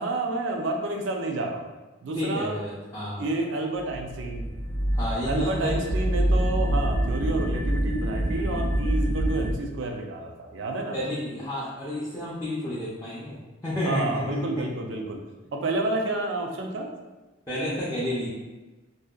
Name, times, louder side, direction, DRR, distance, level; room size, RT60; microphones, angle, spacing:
voice 1, 0.0-1.6 2.0-2.6 3.2-4.5 5.3-11.0 13.8-15.2 15.5-16.9, right 2 dB, 65° right, 3 dB, 0.4 m, -29 dB
voice 2, 2.1-3.3 4.9-5.9 10.9-14.7 17.5-18.3, left 1 dB, 15° left, -11 dB, 0.4 m, -31 dB
sound 1, 3.8-9.5, right 1 dB, 65° left, 0.6 m, -26 dB
2.7 x 2.1 x 2.2 m, 1.2 s
head